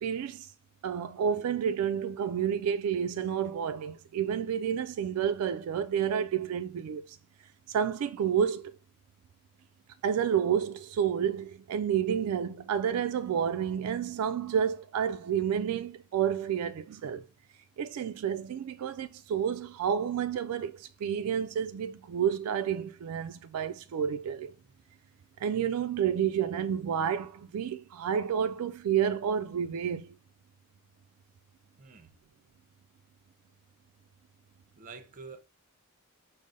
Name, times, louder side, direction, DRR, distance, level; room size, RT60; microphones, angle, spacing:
voice 1, 0.0-0.5 0.8-7.2 7.7-8.7 10.0-17.3 17.8-24.5 25.4-30.1, right 8 dB, 80° right, 0.3 m, -30 dB
voice 2, 31.8-32.1 34.8-35.4, right 4 dB, 35° right, 0.6 m, -47 dB
5.2 x 2.1 x 3.7 m
head